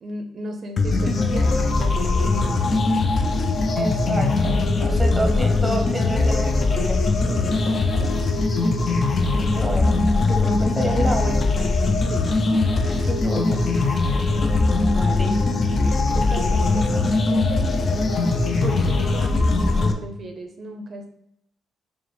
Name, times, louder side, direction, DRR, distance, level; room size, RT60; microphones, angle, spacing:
voice 1, 0.0-3.5 3.9-4.0 7.3-8.1 12.1-12.2 14.9-17.8 18.6-21.1, right 2 dB, 50° right, 4 dB, 0.4 m, -36 dB
sound 1, 0.8-19.9, left 3 dB, 45° left, 0.4 m, -21 dB
voice 2, 3.7-7.0 9.3-11.7 12.9-13.6 15.2-15.3, right 1 dB, 5° right, 1 dB, 0.8 m, -29 dB
4.6 x 2.0 x 3.3 m, 0.76 s
cardioid pair, 90°, 0 cm